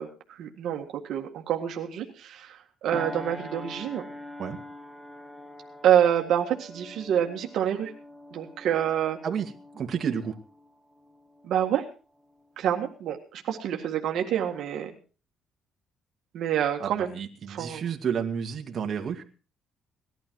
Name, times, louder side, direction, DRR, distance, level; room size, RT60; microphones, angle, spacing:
voice 1, 0.0-4.0 5.8-7.9 8.3-9.2 11.4-11.8 12.6-14.9 16.3-17.1 17.5-17.8, right 10 dB, 70° right, 2 dB, 1.8 m, -27 dB
sound 1, 2.9-11.8 12.2-12.5, left 1 dB, ahead, 1.6 m, -44 dB
voice 2, 9.2-10.4 16.8-19.2, right 7 dB, 45° right, 3 dB, 2.2 m, -31 dB
19.0 x 12.0 x 4.7 m, 0.36 s
cardioid pair, 115°, 0 cm